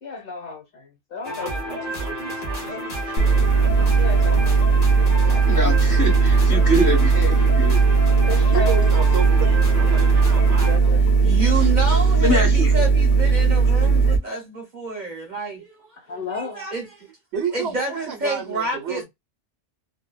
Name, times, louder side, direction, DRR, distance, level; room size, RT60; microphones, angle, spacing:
voice 1, 0.0-1.7 3.9-5.5 8.3-8.9 10.4-11.4 16.0-16.6, left 4 dB, 55° left, 1.3 m, -34 dB
sound 1, 1.2-10.8, right 1 dB, 40° left, 1.0 m, -30 dB
voice 2, 1.4-4.4 8.5-11.1 17.3-19.1, right 7 dB, 80° right, 1.0 m, -33 dB
sound 2, 3.2-14.2, right 5 dB, 80° left, 0.9 m, -17 dB
voice 3, 5.2-7.8 11.5-11.7 12.2-12.9, equal, 20° left, 1.3 m, -25 dB
voice 4, 11.2-17.1 17.5-19.1, right 3 dB, 45° right, 0.9 m, -29 dB
2.6 x 2.1 x 2.2 m
omnidirectional pair, 1.1 m